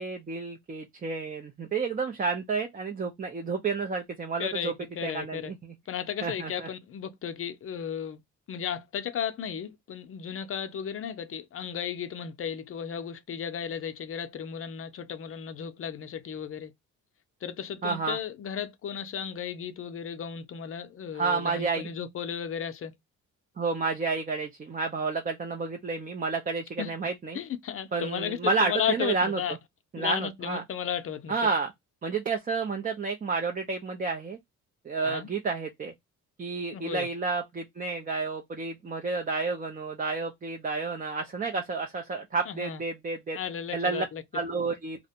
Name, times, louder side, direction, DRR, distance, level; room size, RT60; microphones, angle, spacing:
voice 1, 0.0-4.7 5.0-5.7 6.2-6.7 17.8-18.2 21.1-21.9 23.6-27.4 27.9-29.4 29.9-30.6 31.3-31.7 32.0-34.4 34.8-35.9 36.4-43.4 43.7-44.1 44.3-45.1, right 4 dB, 30° right, 0.5 m, -30 dB
voice 2, 4.4-5.5 5.9-8.2 8.5-16.7 17.4-22.9 26.8-26.9 27.3-29.6 30.0-31.4 35.0-35.3 36.7-37.1 42.5-42.8 43.4-44.2, left 8 dB, 45° left, 0.5 m, -34 dB
2.5 x 2.1 x 2.7 m
cardioid pair, 90°, 30 cm